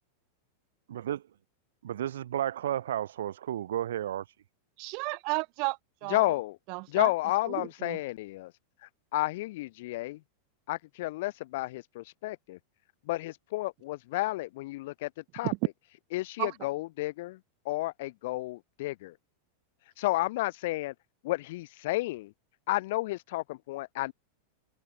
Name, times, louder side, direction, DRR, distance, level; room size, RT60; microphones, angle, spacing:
voice 1, 0.9-1.2 1.8-4.2, right 11 dB, 60° right, 1.2 m, -32 dB
voice 2, 4.8-6.3 6.7-7.1 7.5-8.0 15.4-15.6 16.4-16.5, right 34 dB, 45° right, 0.6 m, -33 dB
voice 3, 6.1-6.6 6.9-8.5 8.8-10.2 10.7-12.6 13.1-15.5 16.1-17.4 17.6-19.2 20.0-20.9 21.2-22.3 22.7-24.1, left 18 dB, 50° left, 0.9 m, -31 dB
figure-of-eight pair, 90°, 0 cm